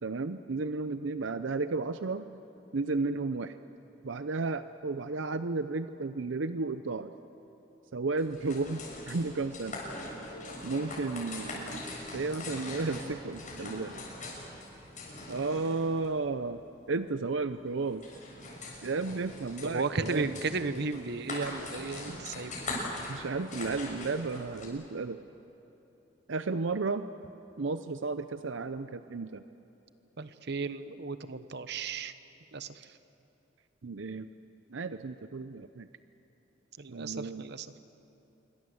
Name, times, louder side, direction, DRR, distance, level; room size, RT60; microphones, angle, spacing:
voice 1, 0.0-2.3 2.7-3.6 4.0-7.1 7.9-9.8 10.6-11.8 12.1-14.0 15.3-16.6 16.9-18.0 18.8-20.3 22.1-22.2 23.1-25.2 26.3-27.1 27.6-29.4 33.8-34.3 34.7-35.9 36.9-37.4, right 3 dB, 85° right, 11 dB, 0.7 m, -33 dB
sound 1, 8.2-24.7, left 2 dB, 45° left, 7.4 m, -42 dB
voice 2, 19.6-22.8 30.2-32.1 32.5-32.7 36.8-37.7, right 4 dB, 65° right, 12 dB, 1.0 m, -34 dB
27.0 x 24.0 x 7.9 m, 3.0 s
head